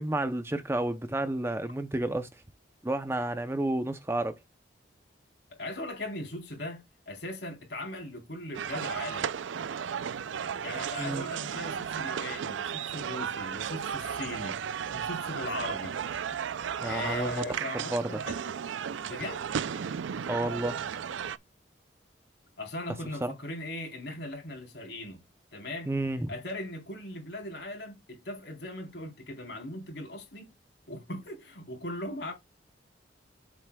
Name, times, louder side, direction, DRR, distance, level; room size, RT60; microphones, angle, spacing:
voice 1, 0.0-2.3 2.8-4.3 11.0-11.2 16.8-18.2 20.3-20.8 23.2-23.3 25.9-26.3, right 1 dB, 15° right, 0.6 m, -31 dB
voice 2, 5.5-9.3 10.6-14.6 14.9-15.9 16.8-18.5 19.0-19.4 22.6-25.2 25.5-25.9 26.3-30.5 30.9-32.3, left 1 dB, 65° left, 3.8 m, -39 dB
sound 1, 8.5-21.4, right 7 dB, 90° right, 0.4 m, -34 dB
7.9 x 7.6 x 2.3 m
head